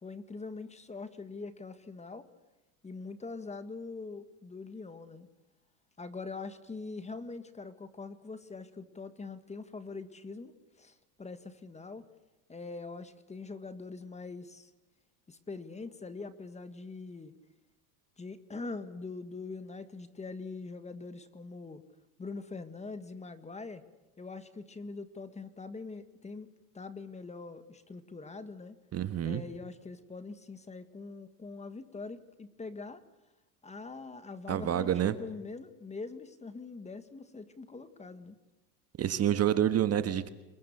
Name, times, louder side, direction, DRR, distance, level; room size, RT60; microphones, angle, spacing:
voice 1, 0.0-2.3 2.8-5.3 6.0-12.0 12.5-14.7 15.3-17.3 18.2-21.8 22.2-23.8 24.2-26.5 26.7-28.8 29.2-33.0 33.6-38.4, left 3 dB, 15° left, 11 dB, 1.8 m, -43 dB
voice 2, 28.9-29.4 34.5-35.1 39.0-40.3, right 10 dB, 30° right, 11 dB, 1.4 m, -28 dB
29.5 x 22.5 x 6.7 m, 1.0 s
supercardioid pair, 120°, 47 cm